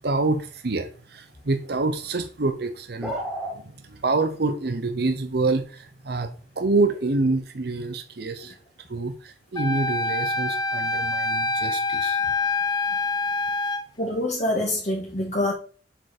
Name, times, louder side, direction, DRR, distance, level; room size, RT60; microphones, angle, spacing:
voice 1, 0.0-3.2 3.5-8.6 8.9-12.2, right 3 dB, 60° right, 7 dB, 0.8 m, -27 dB
sound 1, 3.0-3.6, equal, ahead, 1.8 m, -30 dB
Wind instrument woodwind instrument, 9.6-13.8, left 3 dB, 25° left, 0.4 m, -26 dB
voice 2, 14.0-15.5, left 1 dB, 40° left, -3 dB, 2.0 m, -26 dB
7.4 x 4.8 x 4.9 m, 0.39 s
head